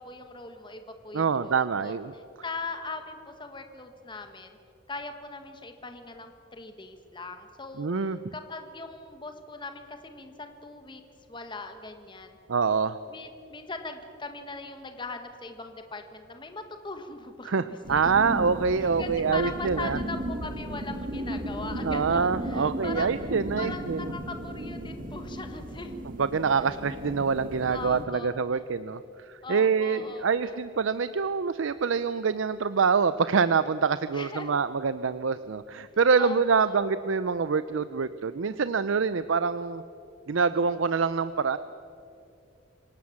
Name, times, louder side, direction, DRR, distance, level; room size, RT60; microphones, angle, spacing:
voice 1, 0.0-1.9 2.4-4.6 4.9-11.0 11.3-12.4 13.1-18.0 19.0-23.1 23.6-25.9 26.7-26.8 27.7-28.6 29.4-30.6 34.1-34.6 36.2-36.8, left 3 dB, 25° left, 6 dB, 1.5 m, -40 dB
voice 2, 1.1-2.1 7.8-8.2 12.5-13.0 17.4-20.0 21.8-24.1 26.2-39.8 40.3-41.6, right 5 dB, 80° right, 13 dB, 0.6 m, -26 dB
sound 1, 17.8-28.0, right 1 dB, 45° right, 2.0 m, -35 dB
27.0 x 17.5 x 7.3 m, 2.5 s
head